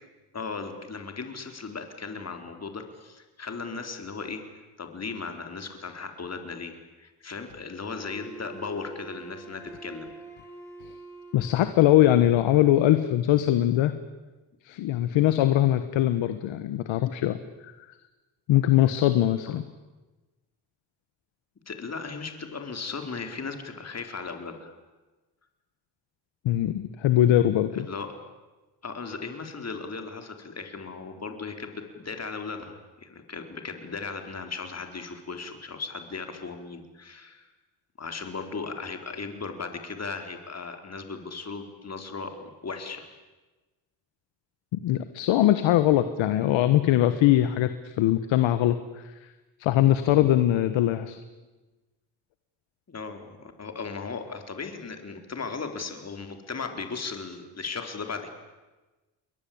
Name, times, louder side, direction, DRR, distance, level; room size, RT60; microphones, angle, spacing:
voice 1, 0.3-4.4 4.8-10.1 19.5-19.7 21.7-24.7 27.7-28.1 28.8-37.5 38.0-42.4 42.6-43.1 52.9-58.3, left 4 dB, 35° left, 6 dB, 4.2 m, -37 dB
Wind instrument woodwind instrument, 7.9-12.1, right 4 dB, 5° left, 7.3 m, -45 dB
voice 2, 11.3-13.9 14.6-17.4 18.5-19.6 26.4-27.9 44.7-48.8 49.6-51.2, left 13 dB, 90° left, 11 dB, 1.4 m, -21 dB
29.5 x 22.0 x 8.8 m, 1.2 s
cardioid pair, 90°, 44 cm